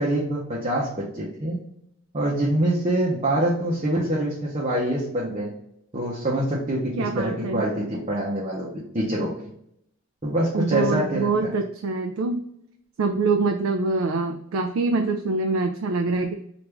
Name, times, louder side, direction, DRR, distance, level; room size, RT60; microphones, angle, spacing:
voice 1, 0.0-1.6 2.1-5.5 5.9-9.5 10.2-11.5, right 1 dB, 30° right, -6 dB, 0.7 m, -25 dB
voice 2, 7.0-7.6 10.5-12.4 13.0-16.3, right 3 dB, 80° right, 5 dB, 0.3 m, -24 dB
3.4 x 2.5 x 3.0 m, 0.73 s
head